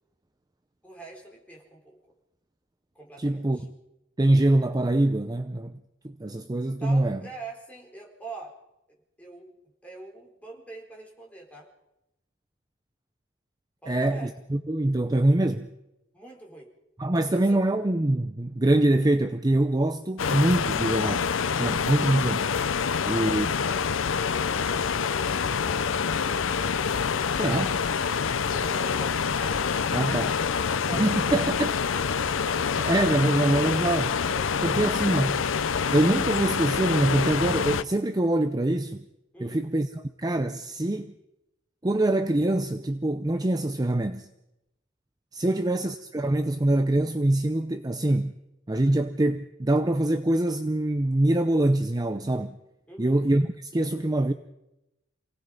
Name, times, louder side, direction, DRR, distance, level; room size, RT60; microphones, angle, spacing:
voice 1, 0.8-2.0 2.9-3.6 6.8-8.5 9.2-9.5 9.8-11.7 13.8-14.4 16.1-16.7 17.3-17.6 22.8-25.3 25.6-26.0 28.3-30.4 30.7-31.9 32.2-33.5 34.3-34.7 35.0-35.1 39.3-39.6 45.4-45.6 52.9-53.2, right 2 dB, 10° left, 4.5 m, -44 dB
voice 2, 3.2-3.6 4.2-5.7 6.0-7.2 13.9-15.7 17.0-21.3 21.6-22.5 23.1-23.5 27.3-27.8 29.9-30.3 30.9-31.7 32.8-34.2 34.6-35.4 35.9-39.1 39.4-41.1 41.8-44.3 45.3-48.4 48.7-52.6 53.0-54.3, right 1 dB, 20° right, 0.6 m, -24 dB
sound 1, 20.2-37.8, left 6 dB, 85° left, 0.6 m, -26 dB
28.0 x 18.0 x 5.3 m
head